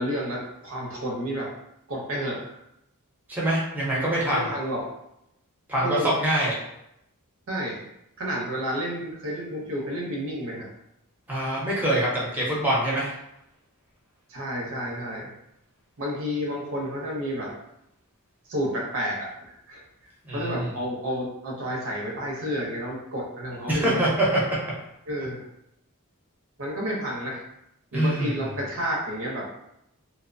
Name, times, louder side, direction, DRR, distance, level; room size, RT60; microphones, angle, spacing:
voice 1, 0.0-1.5 1.9-2.6 4.3-4.9 5.8-6.1 7.5-7.8 8.2-10.7 14.3-15.3 16.0-17.5 18.5-19.8 20.3-24.0 25.1-25.4 26.6-27.5 27.9-29.5, equal, 65° right, -2 dB, 0.6 m, -30 dB
voice 2, 3.3-4.5 5.7-6.5 11.3-13.1 20.3-20.7 23.7-24.6 27.9-28.5, right 1 dB, 10° right, -6 dB, 0.7 m, -24 dB
2.8 x 2.0 x 2.5 m, 0.82 s
head